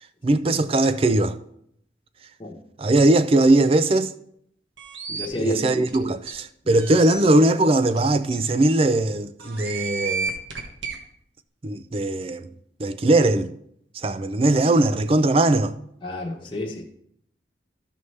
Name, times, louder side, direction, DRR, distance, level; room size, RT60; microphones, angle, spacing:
voice 1, 0.2-1.4 2.8-4.1 5.4-10.3 11.6-12.5 12.8-13.5 13.9-15.7, right 2 dB, 30° right, 0.4 m, -20 dB
sound 1, 4.8-5.3 5.9-6.0 6.3-6.4 6.8-7.2 7.9-8.0 8.3-8.4 9.4-11.0, right 5 dB, 85° right, 1.4 m, -31 dB
voice 2, 5.1-5.6 16.0-16.8, left 1 dB, 25° left, 1.1 m, -29 dB
14.0 x 5.5 x 3.3 m
head